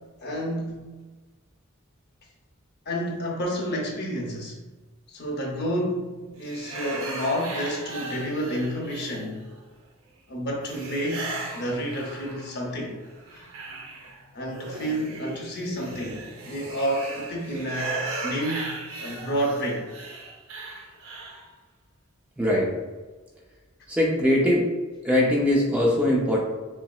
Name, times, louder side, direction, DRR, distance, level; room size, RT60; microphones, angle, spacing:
voice 1, 0.2-0.8 2.9-4.6 5.1-9.4 10.3-13.0 13.3-13.5 14.3-18.7 19.0-19.9, equal, 50° left, 0 dB, 0.7 m, -30 dB
sound 1, 6.4-9.6 10.7-12.7 13.0-21.5, right 3 dB, 80° right, 0.7 m, -37 dB
voice 2, 22.4-22.7 23.9-24.7 25.0-26.4, left 1 dB, 5° right, -4 dB, 0.5 m, -21 dB
5.6 x 2.0 x 2.3 m, 1.3 s
head